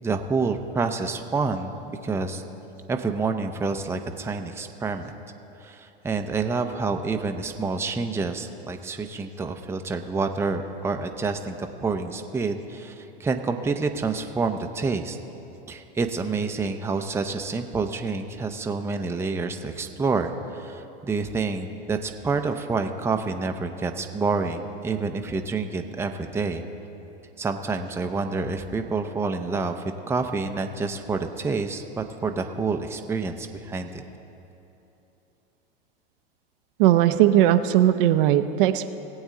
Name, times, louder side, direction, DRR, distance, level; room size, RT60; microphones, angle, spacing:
voice 1, 0.0-2.4 2.9-5.1 5.6-15.2 15.7-26.7 27.4-34.0, right 4 dB, 10° right, 5 dB, 0.5 m, -28 dB
voice 2, 36.8-38.9, right 12 dB, 60° right, 10 dB, 0.6 m, -18 dB
18.5 x 8.0 x 3.7 m, 3.0 s
hypercardioid pair, 100°, 30 cm